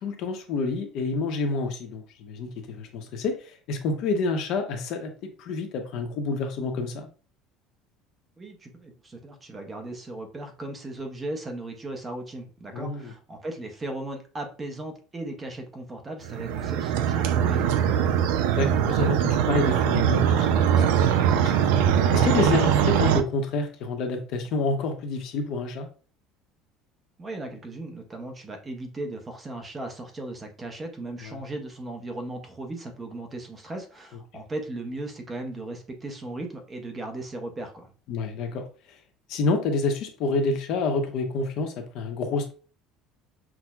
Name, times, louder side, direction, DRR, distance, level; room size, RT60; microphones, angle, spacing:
voice 1, 0.0-5.1 5.4-7.1 12.7-13.1 18.5-21.6 22.1-25.9 31.2-31.4 38.1-39.0 39.3-42.5, left 3 dB, 50° left, 5 dB, 0.7 m, -28 dB
voice 2, 8.4-18.1 27.2-37.9, right 2 dB, 15° right, 4 dB, 0.6 m, -37 dB
sound 1, 16.3-23.2, right 9 dB, 85° right, 0.3 m, -22 dB
5.9 x 2.1 x 2.2 m, 0.38 s
cardioid pair, 165°, 0 cm